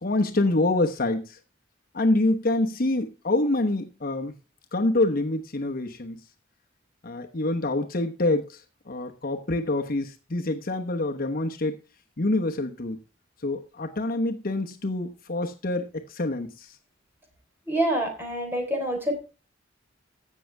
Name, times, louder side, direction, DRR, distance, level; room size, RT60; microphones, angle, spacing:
voice 1, 0.0-1.4 1.9-4.3 4.7-6.2 7.0-8.6 8.9-11.8 12.2-13.0 13.4-16.7, left 2 dB, 50° left, 1.0 m, -26 dB
voice 2, 17.7-19.2, right 1 dB, 10° right, 3.6 m, -26 dB
16.0 x 6.5 x 3.4 m
head